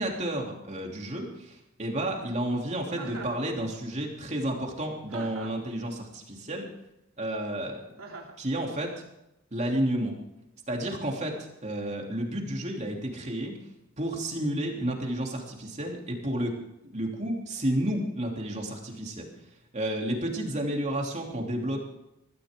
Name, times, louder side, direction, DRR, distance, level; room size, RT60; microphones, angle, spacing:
voice 1, 0.0-6.7 7.2-7.9 8.4-8.9 9.5-10.1 10.7-13.5 14.0-16.6 16.9-19.3 19.7-21.8, right 1 dB, 35° right, 1 dB, 3.1 m, -31 dB
Chuckle chortle, 2.9-3.4 5.1-5.7 8.0-8.4, right 3 dB, 85° right, 3.1 m, -41 dB
22.0 x 14.5 x 3.8 m, 0.86 s
head